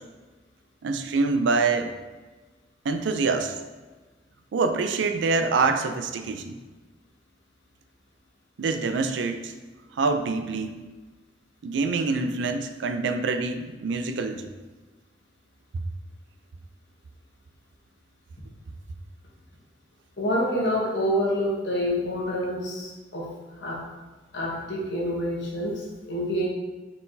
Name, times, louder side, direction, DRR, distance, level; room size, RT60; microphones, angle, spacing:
voice 1, 0.8-1.9 2.9-3.5 4.5-6.6 8.6-9.5 10.0-10.7 11.6-14.5, right 4 dB, 80° right, 7 dB, 0.4 m, -25 dB
voice 2, 20.2-23.3 23.6-23.8 24.3-26.5, equal, 70° left, -3 dB, 1.1 m, -27 dB
4.3 x 3.8 x 2.7 m, 1.2 s
head